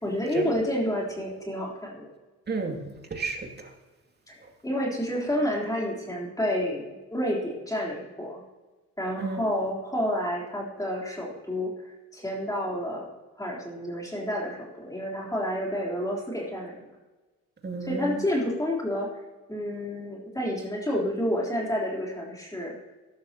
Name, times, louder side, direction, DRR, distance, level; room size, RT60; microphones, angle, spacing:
voice 1, 0.0-2.1 4.3-8.4 9.0-13.1 13.4-16.7 17.8-19.1 19.5-22.8, equal, 10° left, -3 dB, 3.6 m, -29 dB
voice 2, 2.5-3.7 9.2-9.4 17.6-18.2, right 3 dB, 35° right, 2 dB, 2.5 m, -32 dB
15.0 x 12.5 x 2.9 m, 1.2 s
cardioid pair, 90°, 30 cm